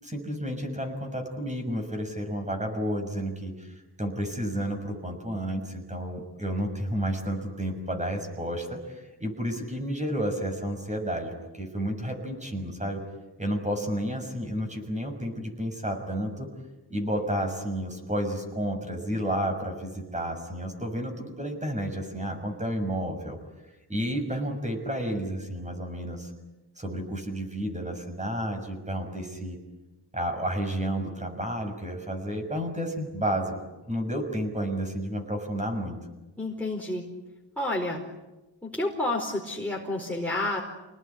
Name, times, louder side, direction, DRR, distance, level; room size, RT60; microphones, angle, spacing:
voice 1, 0.0-13.0 13.4-16.5 16.9-23.4 23.9-26.3 26.8-29.6 30.1-33.5 33.9-36.0, equal, 15° right, 4 dB, 6.4 m, -31 dB
voice 2, 36.4-37.0 37.6-38.0 38.6-40.6, left 2 dB, 5° left, -2 dB, 4.6 m, -29 dB
28.5 x 19.5 x 9.9 m, 1.1 s
wide cardioid pair, 95°, 42 cm